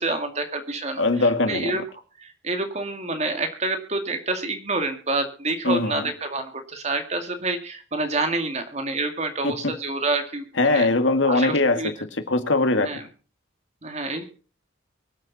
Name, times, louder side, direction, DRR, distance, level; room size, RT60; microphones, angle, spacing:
voice 1, 0.0-1.8 2.2-10.9 11.2-11.9 12.8-13.0 13.8-14.2, right 2 dB, 35° right, 6 dB, 2.2 m, -28 dB
voice 2, 1.0-1.8 5.6-6.1 9.4-9.8 10.6-12.9, left 2 dB, 75° left, 8 dB, 2.0 m, -21 dB
24.5 x 8.6 x 4.1 m, 0.38 s
head